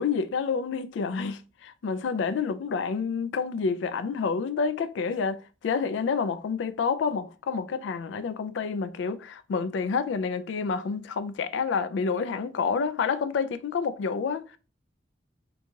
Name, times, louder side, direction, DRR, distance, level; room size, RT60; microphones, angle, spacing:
voice 1, 0.0-14.6, left 5 dB, 75° left, 0.3 m, -29 dB
4.5 x 2.7 x 2.3 m
head